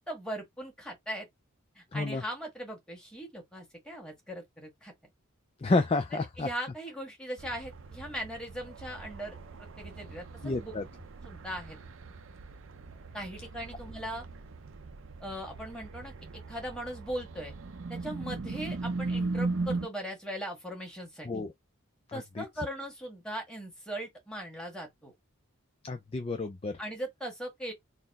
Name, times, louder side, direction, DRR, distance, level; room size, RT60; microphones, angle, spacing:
voice 1, 0.1-1.3 1.7-4.9 6.1-10.7 11.2-11.8 13.1-14.2 15.2-17.5 17.9-21.4 22.1-25.1 26.8-27.7, equal, 5° left, 1.5 m, -39 dB
voice 2, 1.9-2.2 5.6-6.5 10.4-10.8 21.3-21.5 22.1-22.4 25.8-26.7, left 3 dB, 25° left, 0.3 m, -30 dB
sound 1, 7.4-19.9, right 3 dB, 65° right, 0.5 m, -38 dB
4.1 x 2.0 x 4.0 m
head